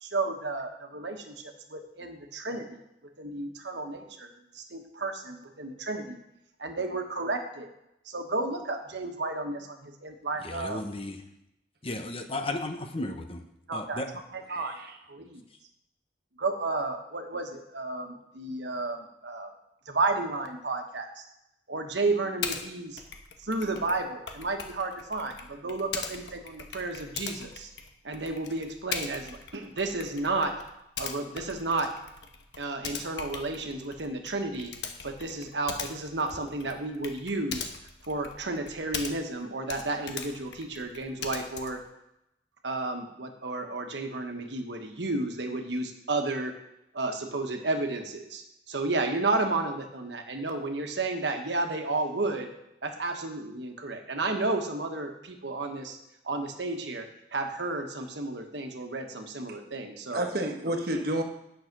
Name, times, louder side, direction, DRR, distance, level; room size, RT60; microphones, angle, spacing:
voice 1, 0.0-2.8 3.2-4.3 4.5-6.2 6.6-7.7 8.0-10.8 13.7-14.0 14.3-14.7 15.1-15.4 16.4-19.5 19.9-21.2 21.7-23.0 23.4-27.7 28.0-30.6 31.0-31.9 32.6-34.7 35.0-37.7 38.0-41.8 42.6-46.5 46.9-52.5 52.8-56.0 56.2-60.2 60.7-60.8, right 2 dB, 85° right, 4 dB, 1.3 m, -32 dB
voice 2, 10.4-11.2 11.8-13.4 13.7-14.1, left 2 dB, 35° left, 6 dB, 0.9 m, -34 dB
voice 3, 14.5-15.0 60.1-61.2, right 1 dB, 60° right, 4 dB, 1.3 m, -30 dB
Typing, 22.4-22.6 23.0-39.4 39.7-41.9, left 6 dB, 80° left, 1.1 m, -40 dB
9.3 x 6.6 x 6.0 m, 0.84 s
head